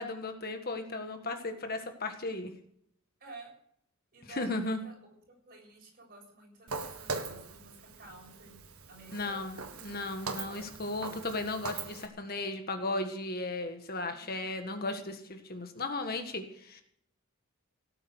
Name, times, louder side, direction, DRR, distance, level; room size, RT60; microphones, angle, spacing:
voice 1, 0.0-2.5 4.3-4.8 9.1-16.8, left 2 dB, 45° left, 6 dB, 1.7 m, -36 dB
voice 2, 3.2-3.5 4.1-8.6 8.9-9.6 10.3-10.8 14.0-14.4, right 3 dB, 40° right, 1 dB, 7.2 m, -52 dB
Walk footsteps, 6.7-12.1, right 4 dB, 80° right, 1.8 m, -41 dB
18.0 x 8.9 x 8.1 m, 0.70 s
head